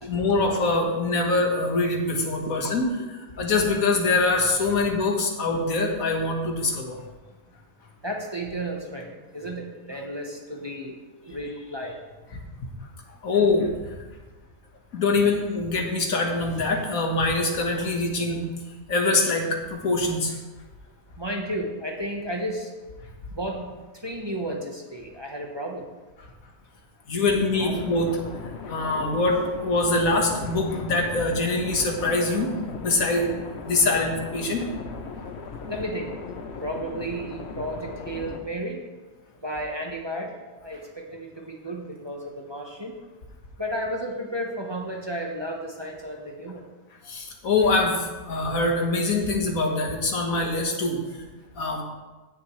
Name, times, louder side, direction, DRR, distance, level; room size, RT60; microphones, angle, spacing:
voice 1, 0.0-7.0 12.6-12.7 13.2-13.9 14.9-18.4 18.9-20.4 27.1-32.5 32.8-33.3 33.6-34.7 47.0-51.2 51.5-51.8, left 3 dB, 90° left, 2 dB, 1.8 m, -24 dB
voice 2, 8.0-12.0 17.7-17.9 21.2-22.7 23.3-25.9 27.6-27.8 35.7-36.1 36.6-38.8 39.4-43.0 43.6-46.6, right 1 dB, 20° right, 0 dB, 0.9 m, -33 dB
sound 1, 27.5-38.4, left 4 dB, 55° left, 1.0 m, -38 dB
16.5 x 6.7 x 3.2 m, 1.2 s
omnidirectional pair, 1.4 m